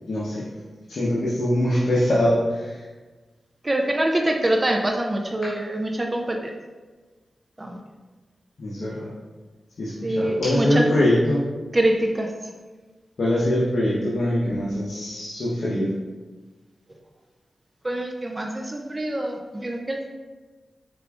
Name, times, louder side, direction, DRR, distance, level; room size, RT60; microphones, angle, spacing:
voice 1, 0.1-0.5 0.9-2.8 8.6-9.1 9.8-11.4 13.2-15.9, left 1 dB, 70° left, -7 dB, 0.8 m, -23 dB
voice 2, 3.6-6.5 7.6-7.8 10.0-10.9 11.7-12.3 17.8-20.1, right 1 dB, 30° right, 2 dB, 0.4 m, -24 dB
4.9 x 3.4 x 2.4 m, 1.3 s
cardioid pair, 55°, 0 cm